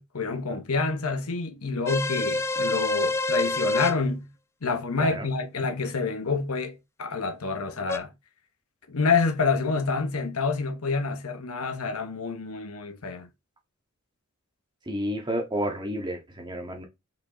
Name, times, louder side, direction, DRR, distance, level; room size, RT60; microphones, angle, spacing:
voice 1, 0.0-4.3 4.6-8.1 8.9-13.3, left 4 dB, 80° left, 1.0 m, -28 dB
sound 1, 1.9-3.9 7.9-8.0, left 2 dB, 10° left, 0.4 m, -26 dB
voice 2, 14.9-16.8, equal, 20° right, 1.9 m, -30 dB
5.3 x 5.1 x 3.8 m
head